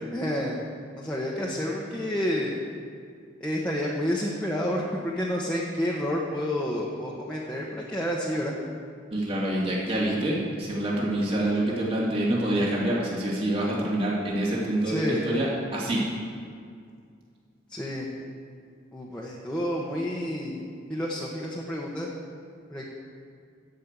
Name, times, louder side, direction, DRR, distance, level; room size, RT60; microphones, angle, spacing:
voice 1, 0.1-0.6 1.0-2.6 3.4-8.6 14.8-15.2 17.7-18.1 18.9-22.1 22.7-22.8, equal, 5° left, -5 dB, 1.2 m, -29 dB
voice 2, 9.1-16.1, right 1 dB, 30° right, -5 dB, 2.7 m, -26 dB
15.0 x 5.5 x 8.3 m, 2.2 s
head